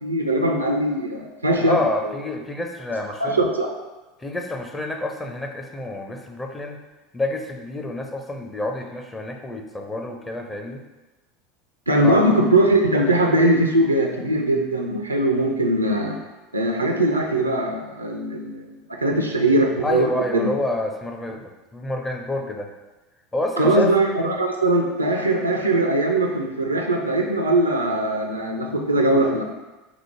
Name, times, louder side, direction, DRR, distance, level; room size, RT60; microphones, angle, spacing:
voice 1, 0.0-2.1 3.2-3.7 11.9-16.2 16.5-20.5 23.6-29.4, right 1 dB, 90° right, 2 dB, 0.5 m, -21 dB
voice 2, 1.6-3.4 4.2-6.8 7.1-10.8 12.0-12.2 19.1-19.2 19.8-22.7 23.3-23.9, left 1 dB, 15° left, 3 dB, 0.6 m, -28 dB
4.7 x 2.0 x 4.6 m, 1.1 s
figure-of-eight pair, 75°, 0 cm